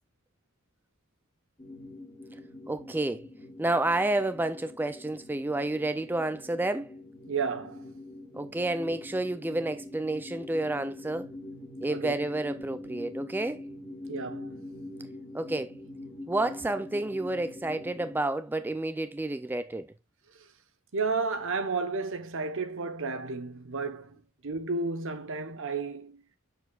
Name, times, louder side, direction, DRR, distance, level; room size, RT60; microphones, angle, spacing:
sound 1, 1.6-18.2, left 1 dB, 20° left, 1.5 m, -44 dB
voice 1, 2.7-3.3 3.6-6.9 8.3-11.3 11.8-13.6 15.3-15.8 16.3-19.9, right 2 dB, 10° right, 0.3 m, -30 dB
voice 2, 7.3-7.9 11.9-12.1 14.1-14.6 20.3-20.5 20.9-24.2 24.4-26.2, right 4 dB, 65° right, 1.0 m, -32 dB
7.8 x 7.0 x 2.4 m
head